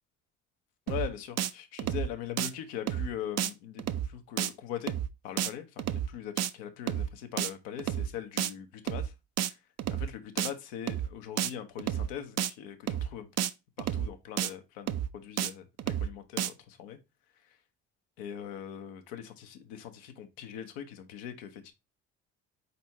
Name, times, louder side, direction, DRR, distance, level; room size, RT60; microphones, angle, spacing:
voice 1, 0.9-4.9 5.2-9.1 10.0-13.3 13.8-17.0 18.2-21.7, left 9 dB, 80° left, 0.9 m, -41 dB
sound 1, 0.9-1.1 1.4-1.5 1.8-2.1 2.4-2.5 2.9-3.1 3.4-3.5 3.8-4.1 4.4-4.5 4.9-5.1 5.4-5.5 5.8-6.1 6.4-6.5 6.9-7.1 7.4-7.5 7.8-8.1 8.4-8.5 8.9-9.1 9.4-9.5 9.8-10.1 10.4-10.5 10.9-11.1 11.4-11.5 11.8-12.1 12.4-12.5 12.9-13.1 13.4-13.5 13.8-14.1 14.4-14.5 14.9-15.1 15.4-15.5 15.8-16.1 16.4-16.5, right 11 dB, 45° right, 0.5 m, -30 dB
4.4 x 4.1 x 2.8 m
hypercardioid pair, 55°, 35 cm